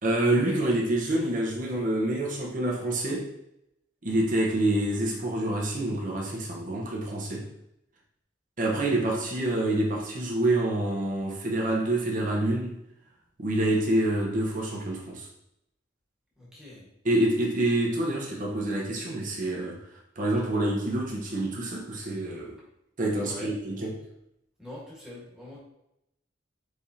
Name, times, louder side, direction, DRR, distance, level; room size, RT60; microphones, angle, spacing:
voice 1, 0.0-3.3 4.0-7.5 8.6-12.8 13.4-15.3 17.0-19.8 20.2-22.5 23.0-24.0, right 1 dB, 45° right, -2 dB, 0.9 m, -27 dB
voice 2, 16.4-16.9 23.2-23.5 24.6-25.6, left 1 dB, 5° right, -7 dB, 1.4 m, -43 dB
4.8 x 3.5 x 2.8 m, 0.82 s
head